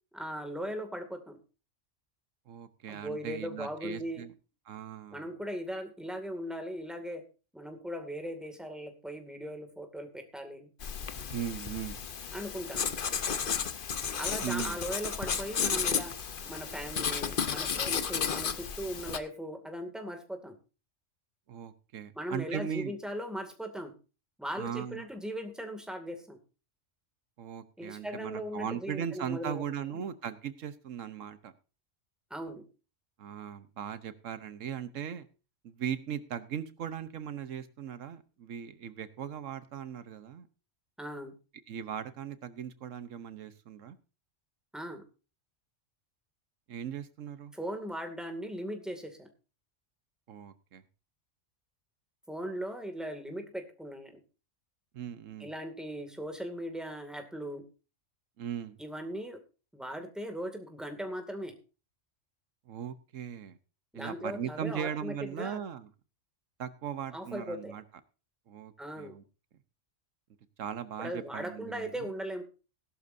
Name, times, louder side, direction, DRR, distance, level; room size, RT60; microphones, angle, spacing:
voice 1, 0.1-1.4 2.9-4.2 5.1-7.2 7.5-10.7 12.3-12.8 14.2-16.2 16.4-20.6 22.1-23.9 24.4-26.4 27.8-29.6 29.9-30.0 32.3-32.7 41.0-41.3 44.7-45.0 47.5-49.3 52.3-54.2 55.4-57.7 58.8-59.4 59.7-61.6 63.9-65.6 67.1-67.8 68.8-69.2 71.0-72.4, equal, ahead, 6 dB, 2.2 m, -38 dB
voice 2, 2.5-4.3 4.7-5.3 11.3-12.0 14.4-14.8 21.5-22.9 24.6-25.0 27.4-31.5 33.2-35.3 35.6-40.5 41.7-44.0 46.7-47.5 50.3-50.8 54.9-55.5 58.4-58.8 62.7-63.6 63.9-65.9 66.6-67.8 68.5-69.2 70.6-72.1, right 8 dB, 85° right, 13 dB, 1.3 m, -38 dB
Writing, 10.8-19.2, left 6 dB, 50° left, 1.0 m, -33 dB
17.0 x 12.0 x 2.6 m, 0.32 s
omnidirectional pair, 1.3 m